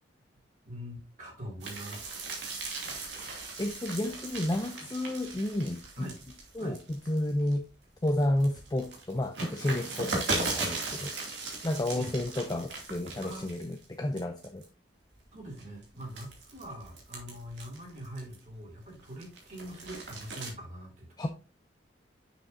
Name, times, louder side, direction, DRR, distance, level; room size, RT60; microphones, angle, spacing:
voice 1, 0.6-2.1 6.0-6.2 6.6-6.8 11.9-12.1 13.2-13.5 15.3-21.3, equal, 45° right, -2 dB, 2.8 m, -43 dB
sound 1, 1.6-7.5 8.0-13.9 14.2-14.6 15.2-18.5 18.9-20.5, right 3 dB, 90° right, 2.5 m, -38 dB
voice 2, 3.6-6.1 6.5-7.6 8.0-11.1 11.6-14.6 21.2-21.3, left 1 dB, 20° left, 4 dB, 0.5 m, -31 dB
7.0 x 6.2 x 2.7 m, 0.33 s
head